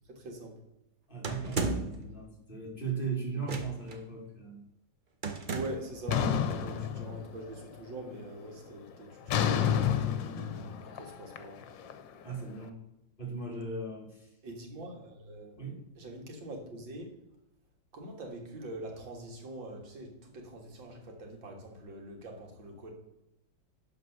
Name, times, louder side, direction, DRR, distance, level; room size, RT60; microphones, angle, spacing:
voice 1, 0.1-0.5 5.5-9.8 10.0-11.6 14.4-15.6 16.0-17.1 17.9-22.9, right 1 dB, 85° right, 2 dB, 2.5 m, -44 dB
voice 2, 1.1-4.6 12.2-12.8 13.2-14.3 15.6-15.8, right 4 dB, 30° left, -1 dB, 2.1 m, -37 dB
sound 1, 1.2-2.0 3.4-4.0 5.2-5.9, right 4 dB, 45° right, 0.6 m, -34 dB
sound 2, 6.1-7.6 8.0-8.4 9.3-12.4, left 8 dB, 80° left, 1.5 m, -30 dB
11.5 x 4.1 x 6.5 m, 0.88 s
omnidirectional pair, 2.0 m